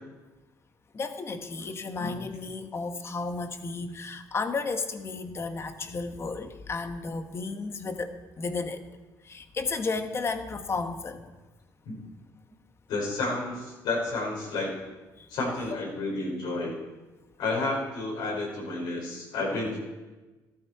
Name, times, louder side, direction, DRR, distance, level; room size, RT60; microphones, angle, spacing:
voice 1, 0.9-8.8 9.2-11.3 15.2-15.3 15.7-15.8 19.5-19.6, left 4 dB, 35° left, 8 dB, 1.2 m, -33 dB
voice 2, 12.9-14.7 15.3-16.7 17.4-19.8, left 2 dB, 80° left, -2 dB, 5.1 m, -30 dB
13.5 x 12.5 x 4.7 m, 1.2 s
cardioid pair, 105°, 8 cm